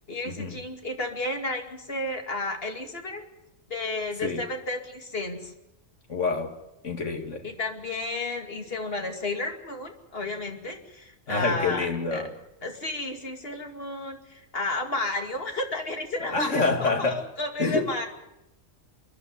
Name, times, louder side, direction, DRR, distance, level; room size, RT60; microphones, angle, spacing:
voice 1, 0.1-3.2 3.7-5.5 7.4-12.3 12.6-16.5 16.8-18.1, left 2 dB, 50° left, 3 dB, 2.7 m, -32 dB
voice 2, 6.1-6.6 6.8-7.4 11.3-12.3 16.3-17.2 17.6-18.1, left 3 dB, 80° left, 4 dB, 2.5 m, -27 dB
28.0 x 11.0 x 9.6 m, 0.90 s
omnidirectional pair, 1.3 m